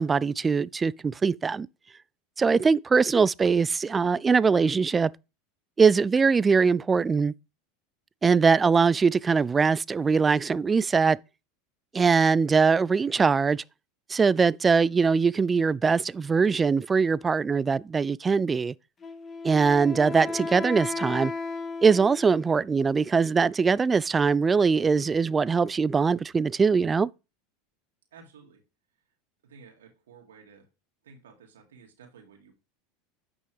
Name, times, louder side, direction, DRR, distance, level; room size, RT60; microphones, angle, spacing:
voice 1, 0.0-1.7 2.4-5.1 5.8-7.3 8.2-11.2 11.9-13.6 14.1-18.7 19.4-21.3 21.8-27.1, right 5 dB, 20° right, 0.3 m, -22 dB
Wind instrument woodwind instrument, 19.0-22.6, left 4 dB, 25° left, 1.7 m, -35 dB
voice 2, 28.1-28.6 29.4-30.7 31.0-32.5, right 5 dB, 85° right, 2.3 m, -53 dB
9.5 x 6.1 x 3.4 m
hypercardioid pair, 90°, 0 cm